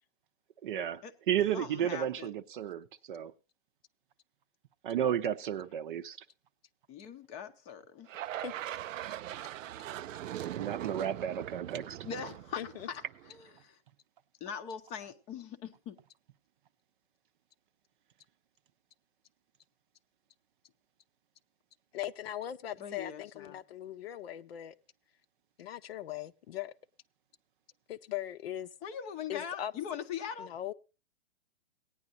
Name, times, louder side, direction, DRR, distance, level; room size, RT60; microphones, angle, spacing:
voice 1, 0.6-3.3 4.8-6.2 10.6-12.0, right 9 dB, 40° right, 0.7 m, -33 dB
voice 2, 1.5-2.3 6.9-8.1 12.0-13.8 14.4-16.0 22.8-23.6 28.8-30.5, left 8 dB, 15° left, 0.7 m, -41 dB
voice 3, 8.1-8.5 12.6-12.9 21.9-24.8 25.6-26.7 27.9-28.7 29.3-29.7 30.4-30.7, left 12 dB, 50° left, 0.7 m, -40 dB
sound 1, 8.1-13.4, right 12 dB, 75° right, 0.5 m, -41 dB
18.0 x 9.9 x 2.6 m
hypercardioid pair, 150°, 39 cm